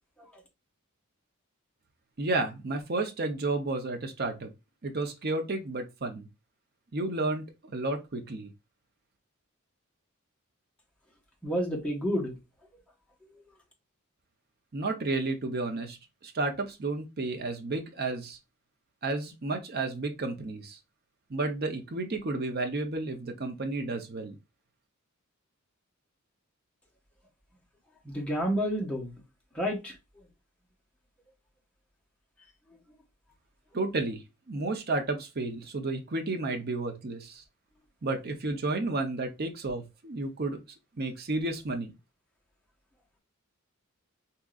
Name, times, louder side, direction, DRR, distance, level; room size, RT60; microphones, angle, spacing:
voice 1, 2.2-4.5 4.8-6.3 6.9-8.5 14.7-18.4 19.0-20.8 21.3-24.3 33.7-37.4 38.0-40.6 41.0-41.9, right 2 dB, 45° right, 0.7 m, -32 dB
voice 2, 11.4-12.4 13.3-13.4 28.0-29.2 29.5-30.0, equal, 5° left, 1.0 m, -30 dB
3.6 x 2.8 x 2.4 m
head